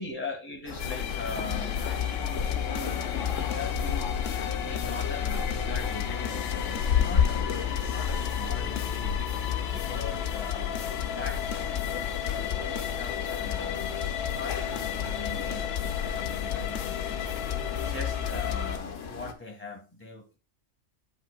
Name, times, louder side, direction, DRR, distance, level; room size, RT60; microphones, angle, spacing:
voice 1, 0.0-7.5 7.9-9.2 9.7-13.9 14.3-17.2 17.8-20.2, left 3 dB, 10° left, 0 dB, 1.6 m, -41 dB
sound 1, 0.7-19.3, left 6 dB, 85° left, 1.2 m, -34 dB
sound 2, 0.8-18.8, left 9 dB, 60° left, 0.8 m, -32 dB
8.5 x 5.6 x 2.2 m, 0.31 s
omnidirectional pair, 1.3 m